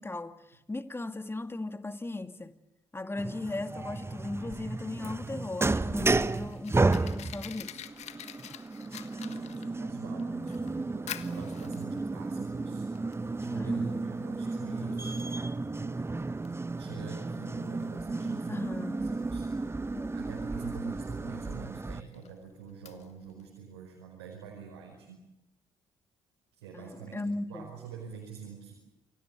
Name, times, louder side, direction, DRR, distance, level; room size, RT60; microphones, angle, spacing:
voice 1, 0.0-2.6 2.9-7.7 13.6-14.0 18.5-19.1 19.9-20.2 26.7-27.7, left 2 dB, 20° left, 2.2 m, -37 dB
sound 1, 3.2-22.0, right 3 dB, 20° right, 1.0 m, -33 dB
Fire, 5.8-23.5, left 10 dB, 60° left, 1.4 m, -49 dB
voice 2, 9.2-12.9 13.4-15.4 15.8-16.4 16.8-18.7 19.0-19.5 20.1-25.2 26.5-27.2 27.5-28.7, right 6 dB, 80° right, 5.0 m, -47 dB
28.5 x 23.5 x 6.9 m
figure-of-eight pair, 45°, 13 cm